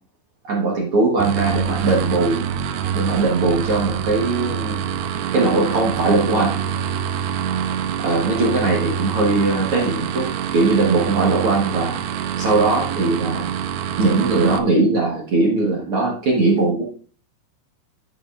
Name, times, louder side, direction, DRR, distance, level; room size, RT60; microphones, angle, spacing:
voice 1, 0.4-2.5 2.9-4.8 5.3-6.6 8.0-12.0 12.4-13.5 14.0-16.8, right 3 dB, 60° right, -3 dB, 1.5 m, -20 dB
sound 1, 1.2-14.6, right 8 dB, 80° right, 2.6 m, -25 dB
9.6 x 9.4 x 2.5 m, 0.41 s
omnidirectional pair, 4.6 m